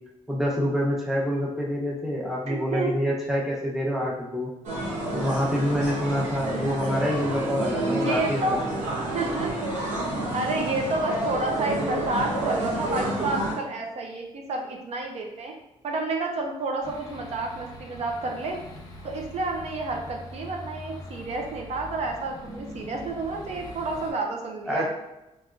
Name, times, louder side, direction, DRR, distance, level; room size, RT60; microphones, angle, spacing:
voice 1, 0.3-4.5 5.1-8.6 24.7-24.9, equal, 5° right, -3 dB, 0.8 m, -26 dB
voice 2, 2.5-3.0 6.5-6.6 7.9-8.7 9.1-9.7 10.3-15.5 15.8-18.6 19.0-24.9, right 2 dB, 60° right, 1 dB, 0.5 m, -30 dB
sound 1, 4.6-13.5, right 1 dB, 85° right, 0.9 m, -29 dB
sound 2, 16.8-24.1, left 1 dB, 30° left, 0.8 m, -42 dB
3.6 x 2.9 x 2.5 m, 0.95 s
cardioid pair, 110°, 12 cm